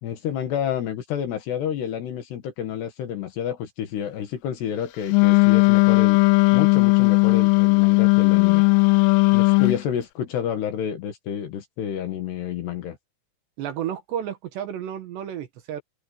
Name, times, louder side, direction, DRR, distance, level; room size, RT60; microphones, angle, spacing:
voice 1, 0.0-6.2 6.5-8.7 9.3-13.0, left 9 dB, 65° left, 3.5 m, -29 dB
Wind instrument woodwind instrument, 5.1-9.8, left 31 dB, 85° left, 3.1 m, -17 dB
voice 2, 13.6-15.8, right 10 dB, 65° right, 3.2 m, -31 dB
open air
omnidirectional pair, 5.9 m